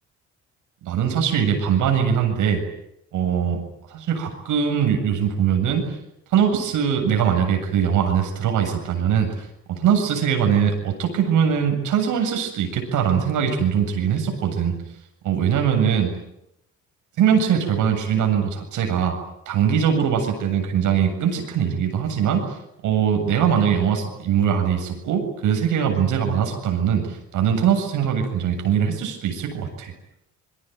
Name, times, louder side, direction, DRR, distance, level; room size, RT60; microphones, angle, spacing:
voice 1, 0.8-2.6 3.1-3.6 3.9-5.8 6.3-9.3 9.7-14.7 15.2-16.1 17.2-19.1 19.5-22.4 22.8-29.9, right 8 dB, 85° right, 5 dB, 7.6 m, -21 dB
27.5 x 22.5 x 9.5 m, 0.83 s
cardioid pair, 90°, 30 cm